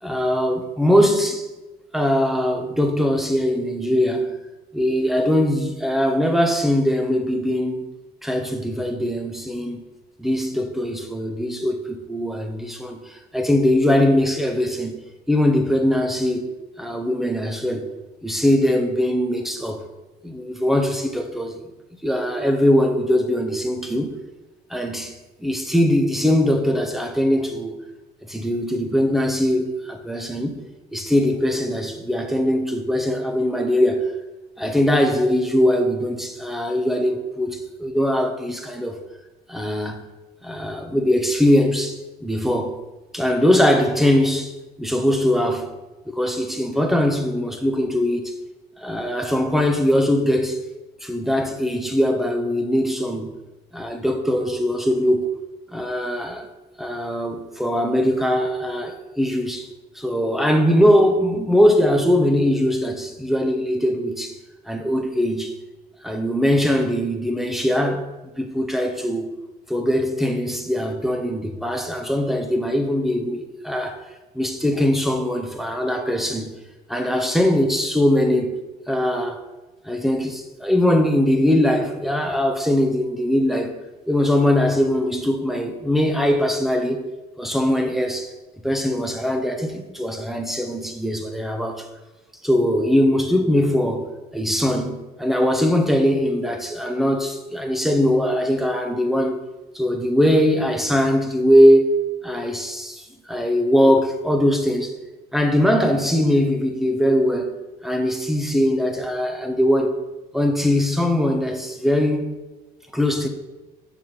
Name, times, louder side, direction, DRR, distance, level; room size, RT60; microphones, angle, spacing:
voice 1, 0.0-1.5 1.9-4.4 4.7-7.9 8.2-9.8 10.2-15.0 15.3-16.5 16.8-17.9 18.2-19.8 20.2-21.6 22.0-24.2 24.7-25.1 25.4-27.8 28.3-30.6 30.9-34.1 34.6-39.0 39.5-40.1 40.4-42.8 43.1-44.5 44.8-45.7 46.1-48.3 48.8-50.6 51.0-53.3 53.7-55.3 55.7-56.5 56.8-59.7 59.9-64.4 64.7-65.5 66.0-69.3 69.7-74.0 74.3-76.5 76.9-78.6 78.9-79.4 79.8-83.8 84.1-87.1 87.4-88.3 88.6-91.9 92.4-99.4 99.7-101.9 102.2-104.9 105.3-107.6 107.8-109.9 110.3-112.4 112.9-113.3, equal, ahead, 0.9 m, -21 dB
6.5 x 4.8 x 5.7 m
cardioid pair, 110°, 17 cm